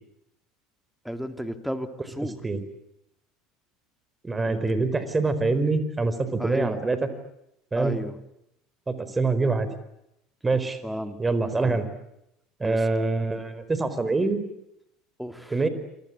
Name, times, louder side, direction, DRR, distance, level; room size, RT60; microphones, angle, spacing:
voice 1, 1.0-2.4 4.4-4.8 6.4-6.8 7.7-8.1 10.8-11.2 11.6-11.8 12.6-12.8 15.2-15.6, equal, ahead, 8 dB, 3.1 m, -33 dB
voice 2, 4.2-7.0 7.7-7.9 8.9-9.7 10.4-10.8 11.2-11.9 12.6-14.4 15.5-15.7, right 3 dB, 20° right, 12 dB, 4.6 m, -25 dB
28.0 x 25.0 x 8.6 m, 0.82 s
hypercardioid pair, 70°, 0 cm